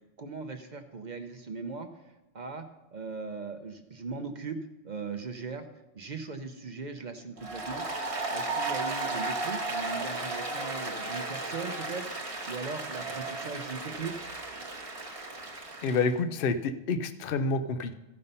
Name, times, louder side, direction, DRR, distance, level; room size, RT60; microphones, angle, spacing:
voice 1, 0.2-2.0 2.3-2.7 2.9-4.6 4.8-5.7 5.9-7.8 8.3-12.1 12.5-14.3, right 4 dB, 45° right, 7 dB, 0.7 m, -39 dB
Applause, 7.4-16.1, right 2 dB, 30° right, 1.1 m, -35 dB
voice 2, 15.8-17.9, left 4 dB, 55° left, 11 dB, 0.7 m, -28 dB
15.0 x 5.5 x 5.4 m, 1.0 s
omnidirectional pair, 1.3 m